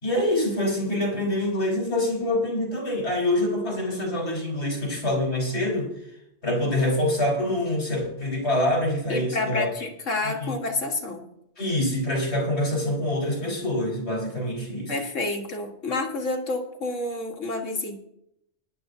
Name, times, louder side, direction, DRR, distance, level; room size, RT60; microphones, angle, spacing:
voice 1, 0.0-5.9 6.4-9.7 10.2-10.6 11.6-14.9, left 1 dB, 60° left, -2 dB, 4.6 m, -25 dB
voice 2, 9.1-11.2 14.9-18.0, left 2 dB, 80° left, 1 dB, 1.9 m, -29 dB
19.5 x 11.0 x 2.7 m, 0.80 s
omnidirectional pair, 1.3 m